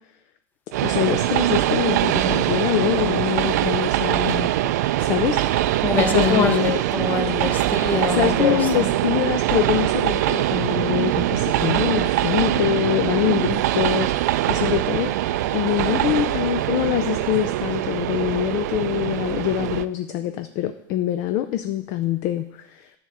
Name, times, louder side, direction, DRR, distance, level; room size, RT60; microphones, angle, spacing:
Train, 0.7-19.9, right 14 dB, 65° right, 0.4 m, -22 dB
voice 1, 0.8-4.5 5.0-6.7 7.9-15.1 15.5-22.9, left 12 dB, 35° left, 9 dB, 0.3 m, -24 dB
voice 2, 5.8-8.9, left 5 dB, 20° left, 5 dB, 0.8 m, -24 dB
10.0 x 3.6 x 7.2 m, 0.80 s
supercardioid pair, 170°, 10 cm